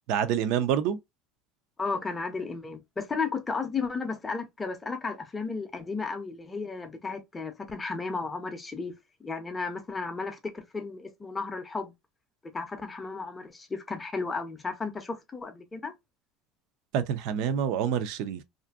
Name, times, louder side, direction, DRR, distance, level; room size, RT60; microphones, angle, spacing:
voice 1, 0.1-1.0 16.9-18.4, right 8 dB, 65° right, 0.4 m, -27 dB
voice 2, 1.8-8.9 9.2-11.9 12.4-15.9, left 4 dB, 15° left, 0.5 m, -34 dB
2.5 x 2.5 x 2.3 m
cardioid pair, 150°, 0 cm